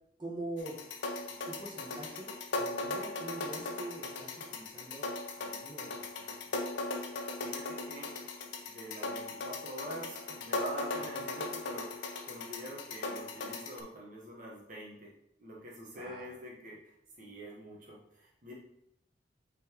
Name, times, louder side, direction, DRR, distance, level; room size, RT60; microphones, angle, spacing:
voice 1, 0.2-0.9 1.3-5.1 5.4-6.6 15.9-16.3, right 2 dB, 25° right, -4 dB, 1.3 m, -44 dB
sound 1, 0.6-13.8, left 3 dB, 85° left, 0.8 m, -38 dB
voice 2, 7.4-8.1 8.7-15.1 15.4-18.5, right 1 dB, 45° right, -3 dB, 1.2 m, -46 dB
8.4 x 3.9 x 3.0 m, 0.76 s
head